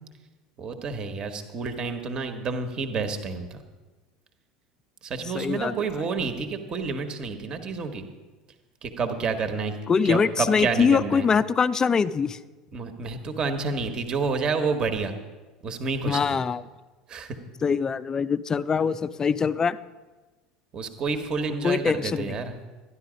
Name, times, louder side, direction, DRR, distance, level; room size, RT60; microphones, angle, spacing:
voice 1, 0.6-3.6 5.0-8.1 8.8-9.7 10.0-11.3 12.7-15.1 15.6-16.2 17.1-17.4 20.7-22.5, right 4 dB, 35° right, 8 dB, 1.4 m, -29 dB
voice 2, 5.3-5.7 9.9-12.4 16.0-16.6 17.6-19.8 21.6-22.4, left 6 dB, 25° left, 16 dB, 0.5 m, -23 dB
12.5 x 11.5 x 5.1 m, 1.2 s
figure-of-eight pair, 70°, 2 cm